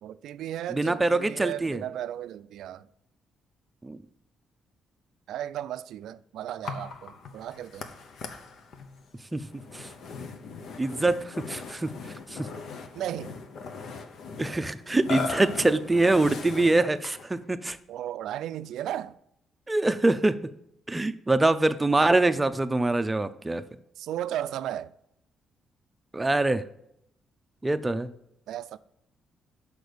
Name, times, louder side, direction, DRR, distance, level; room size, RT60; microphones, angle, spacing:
voice 1, 0.0-2.9 5.3-7.8 12.9-13.4 17.9-19.2 24.0-24.9 28.5-28.8, right 11 dB, 80° right, 0.3 m, -35 dB
voice 2, 0.7-1.8 3.8-4.0 9.3-9.5 9.7-9.9 10.8-11.9 12.3-12.5 14.4-17.8 19.7-20.4 20.9-23.6 26.1-26.6 27.6-28.1, right 2 dB, 15° right, 0.5 m, -24 dB
Burping eructation, 6.6-17.3, left 4 dB, 65° left, 0.9 m, -39 dB
6.3 x 5.1 x 5.0 m
cardioid pair, 90°, 0 cm